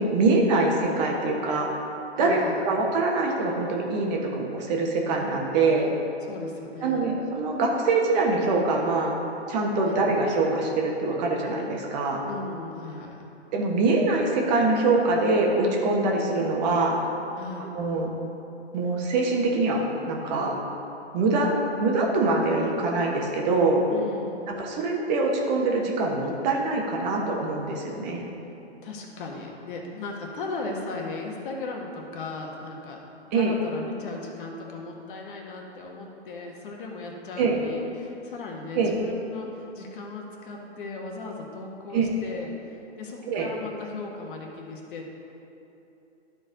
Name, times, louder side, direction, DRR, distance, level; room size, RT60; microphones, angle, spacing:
voice 1, 0.0-1.7 2.2-2.4 2.6-5.9 6.8-9.1 9.5-12.2 13.5-17.0 17.6-18.1 18.7-20.6 21.1-23.8 24.6-28.3 33.3-33.5 37.4-37.5 38.7-38.9 41.9-42.0 43.3-43.5, right 3 dB, 40° right, 0 dB, 1.2 m, -24 dB
voice 2, 2.2-2.6 6.3-7.1 9.9-10.0 12.3-13.2 17.4-17.7 23.9-24.4 28.8-45.1, left 3 dB, 50° left, 0 dB, 1.4 m, -37 dB
12.0 x 4.6 x 3.9 m, 2.9 s
hypercardioid pair, 130°, 34 cm